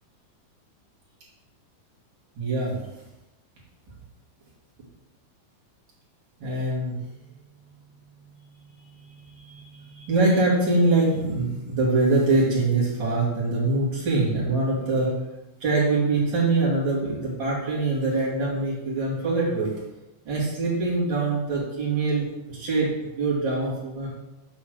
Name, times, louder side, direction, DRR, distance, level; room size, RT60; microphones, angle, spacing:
voice 1, 2.3-2.8 6.4-7.0 8.2-15.1 15.6-19.7 20.2-24.1, right 2 dB, 35° right, -6 dB, 2.6 m, -24 dB
6.3 x 4.3 x 6.5 m, 0.98 s
omnidirectional pair, 4.5 m